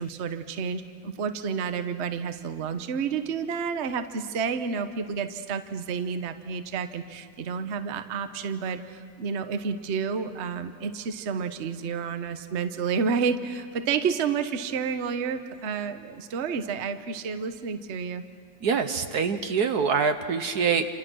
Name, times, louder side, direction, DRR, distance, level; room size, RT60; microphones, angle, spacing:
voice 1, 0.0-18.2, right 6 dB, 45° right, 9 dB, 1.1 m, -30 dB
voice 2, 18.6-20.9, right 6 dB, 60° right, 8 dB, 1.3 m, -25 dB
29.0 x 27.0 x 6.3 m, 2.1 s
omnidirectional pair, 2.0 m